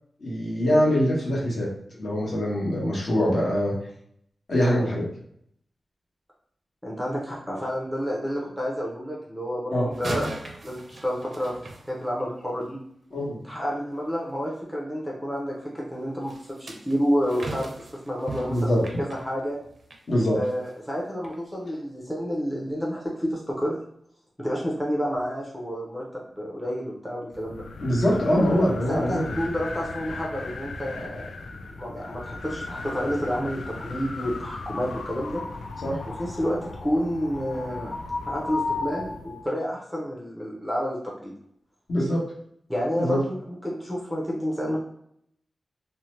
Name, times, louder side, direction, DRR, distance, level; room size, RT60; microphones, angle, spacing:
voice 1, 0.2-1.7 2.0-3.7 4.5-5.1 9.7-9.9 13.1-13.4 18.5-18.8 20.1-20.4 27.8-29.4 35.8-36.0 41.9-42.2 42.9-43.2, equal, 55° left, -5 dB, 1.0 m, -23 dB
voice 2, 6.8-11.5 11.9-12.8 13.4-17.7 18.1-19.6 20.3-23.8 24.4-27.6 28.9-31.3 31.8-35.4 36.2-37.9 38.3-41.3 42.7-44.8, equal, 5° left, -4 dB, 0.6 m, -29 dB
sound 1, 9.9-12.5 16.3-20.1 20.5-20.7 21.2-21.4, right 2 dB, 45° right, 0.5 m, -38 dB
sound 2, 27.3-39.5, left 3 dB, 75° left, 0.3 m, -35 dB
2.7 x 2.1 x 3.0 m, 0.69 s
wide cardioid pair, 155°, 0 cm